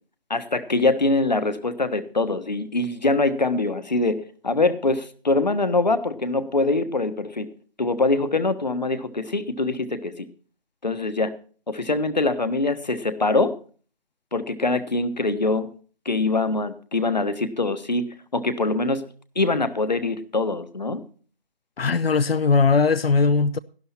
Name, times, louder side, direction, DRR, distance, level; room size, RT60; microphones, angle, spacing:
voice 1, 0.3-7.5 7.8-10.2 10.8-11.4 11.7-13.6 14.3-15.7 16.0-19.1 19.3-21.0, left 2 dB, 50° left, 1.2 m, -23 dB
voice 2, 21.8-23.6, left 4 dB, 85° left, 0.7 m, -19 dB
12.0 x 12.0 x 4.3 m
figure-of-eight pair, 175°, 29 cm